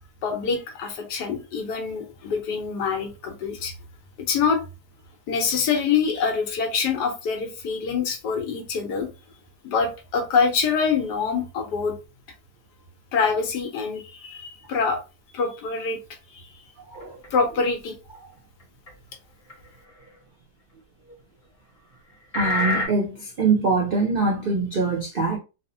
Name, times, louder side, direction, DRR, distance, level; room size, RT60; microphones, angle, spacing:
voice 1, 0.2-3.7 4.3-4.6 5.3-9.1 9.6-11.9 13.1-15.0 15.3-16.0 16.3-16.4 17.3-18.0, left 5 dB, 75° left, 1.3 m, -25 dB
voice 2, 16.9-17.2 22.3-25.4, right 4 dB, 75° right, 0.5 m, -23 dB
sound 1, 17.0-17.3 18.9-19.0 19.5-19.6 21.1-21.2 22.3-22.9, left 1 dB, 45° left, 0.4 m, -25 dB
3.5 x 2.0 x 2.6 m
omnidirectional pair, 1.9 m